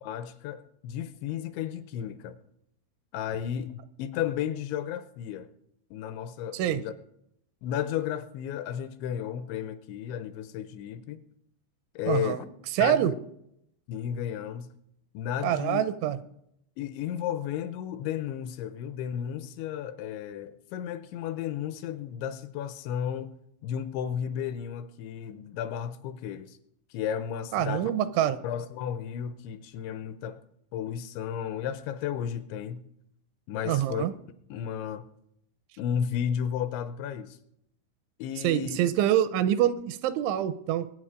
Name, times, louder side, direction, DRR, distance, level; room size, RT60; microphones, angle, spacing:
voice 1, 0.0-2.4 3.1-5.5 5.9-6.9 7.6-11.2 12.0-12.5 12.8-13.2 13.9-14.7 15.1-15.8 16.8-23.3 23.6-26.6 26.9-27.9 28.4-30.4 30.7-32.8 33.5-34.1 34.5-35.1 35.8-37.4 38.2-38.8, left 9 dB, 80° left, 2.9 m, -33 dB
voice 2, 12.1-12.4 12.7-13.1 15.4-16.2 27.5-28.4 33.7-34.1 38.4-40.9, right 11 dB, 80° right, 3.0 m, -25 dB
23.5 x 8.5 x 5.0 m
omnidirectional pair, 5.5 m